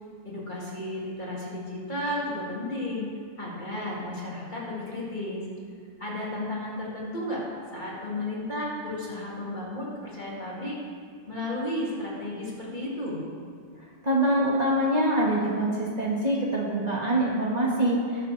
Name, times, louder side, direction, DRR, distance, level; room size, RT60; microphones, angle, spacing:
voice 1, 0.2-3.1 3.4-5.4 6.0-7.4 7.7-10.8 11.3-13.2, left 1 dB, 40° left, -6 dB, 2.6 m, -33 dB
voice 2, 14.0-18.3, right 1 dB, 35° right, -5 dB, 1.9 m, -24 dB
20.0 x 6.8 x 3.4 m, 2.2 s
omnidirectional pair, 1.3 m